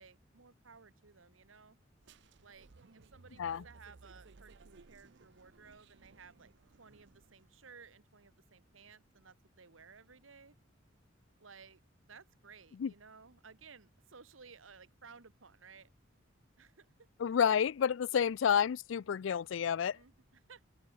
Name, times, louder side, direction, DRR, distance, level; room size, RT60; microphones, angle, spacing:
voice 1, 0.0-1.8 2.4-10.6 11.4-11.8 12.1-15.9 16.6-17.1 18.1-18.3 19.9-20.6, right 5 dB, 85° right, 1.4 m, -58 dB
sound 1, 2.0-7.6, right 3 dB, 65° right, 0.7 m, -60 dB
voice 2, 17.2-20.0, left 7 dB, 70° left, 0.4 m, -30 dB
open air
head